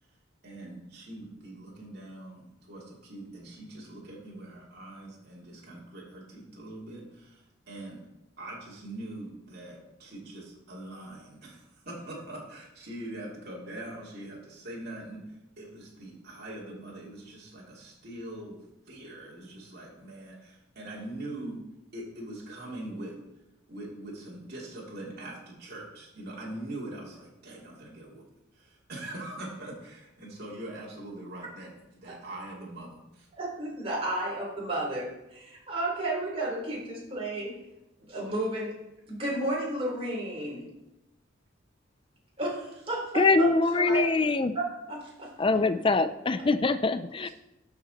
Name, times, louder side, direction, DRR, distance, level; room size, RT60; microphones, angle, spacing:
voice 1, 0.4-8.0 8.4-15.2 15.6-18.6 18.9-21.6 21.9-23.2 23.7-28.2 28.5-33.3, right 1 dB, 50° right, -5 dB, 2.6 m, -42 dB
voice 2, 33.4-37.5 38.1-38.7 39.1-40.6 42.4-43.5 43.7-44.0 44.5-45.3, right 1 dB, 30° right, -4 dB, 3.5 m, -32 dB
voice 3, 43.1-44.5 45.4-47.3, left 3 dB, 25° left, 12 dB, 0.4 m, -24 dB
12.5 x 6.0 x 4.1 m, 0.93 s
head